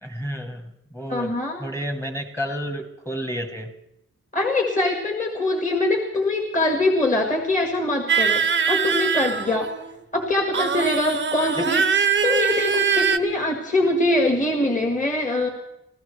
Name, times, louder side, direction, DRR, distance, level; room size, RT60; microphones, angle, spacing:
voice 1, 0.0-1.3 1.6-3.7 11.6-11.7, equal, 10° left, 5 dB, 1.2 m, -31 dB
voice 2, 1.1-1.7 4.3-9.7 10.1-15.5, left 2 dB, 25° left, 2 dB, 1.7 m, -23 dB
sound 1, 8.1-9.9 10.5-13.2, right 6 dB, 40° right, 0.6 m, -22 dB
26.0 x 15.5 x 3.2 m, 0.86 s
wide cardioid pair, 180°, 30 cm